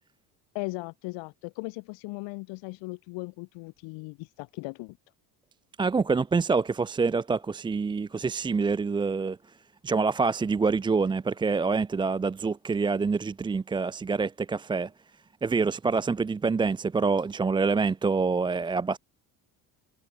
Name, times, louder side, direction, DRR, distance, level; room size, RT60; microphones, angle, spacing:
voice 1, 0.5-5.0, left 26 dB, 85° left, 1.3 m, -38 dB
voice 2, 5.8-9.6 9.8-14.9 15.4-19.0, right 4 dB, 10° right, 0.4 m, -26 dB
cardioid pair, 165°, 44 cm